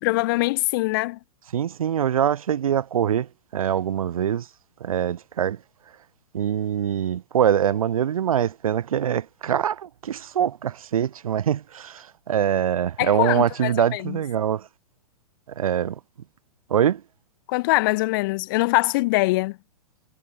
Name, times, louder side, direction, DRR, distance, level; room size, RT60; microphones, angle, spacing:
voice 1, 0.0-1.2 13.0-14.2 17.5-19.6, left 22 dB, 35° left, 0.5 m, -23 dB
voice 2, 1.5-4.5 4.8-5.6 6.3-14.7 15.6-16.0 16.7-17.0, right 9 dB, 65° right, 0.5 m, -24 dB
figure-of-eight pair, 110°, 19 cm